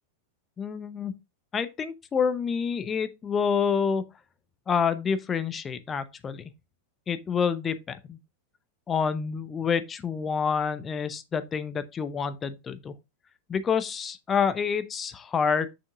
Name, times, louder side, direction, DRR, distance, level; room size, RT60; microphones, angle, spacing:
voice 1, 0.6-1.1 1.5-4.0 4.7-6.5 7.1-8.2 8.9-12.9 13.5-15.7, left 6 dB, 20° left, 0.8 m, -28 dB
7.1 x 5.7 x 2.4 m
figure-of-eight pair, 90°, 0 cm